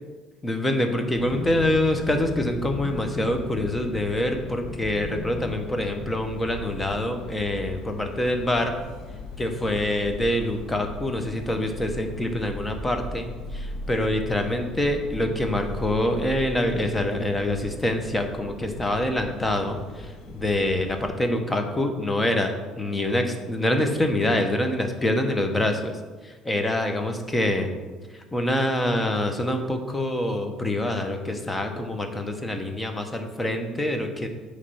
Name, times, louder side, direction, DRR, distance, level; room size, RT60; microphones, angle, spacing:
voice 1, 0.4-8.7 9.4-13.2 13.5-19.8 20.3-25.9 26.4-27.7 28.3-34.3, left 1 dB, 15° left, 5 dB, 1.0 m, -25 dB
sound 1, 1.2-21.1, left 2 dB, 60° left, 0.9 m, -37 dB
8.3 x 3.3 x 5.6 m, 1.3 s
cardioid pair, 105°, 0 cm